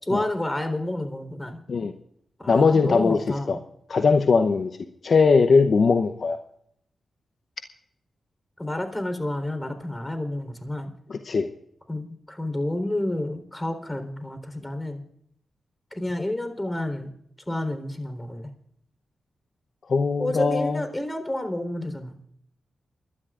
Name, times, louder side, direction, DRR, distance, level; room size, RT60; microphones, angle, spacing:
voice 1, 0.0-1.6 2.4-3.6 8.6-10.9 11.9-15.0 15.9-17.1 17.5-18.5 20.2-22.2, left 1 dB, 20° left, 8 dB, 3.8 m, -30 dB
voice 2, 2.5-3.2 3.5-3.6 3.9-4.7 5.0-6.4 11.1-11.5 19.9-20.8, left 4 dB, 60° left, 7 dB, 0.8 m, -20 dB
29.0 x 12.0 x 2.5 m, 0.70 s
supercardioid pair, 40°, 0 cm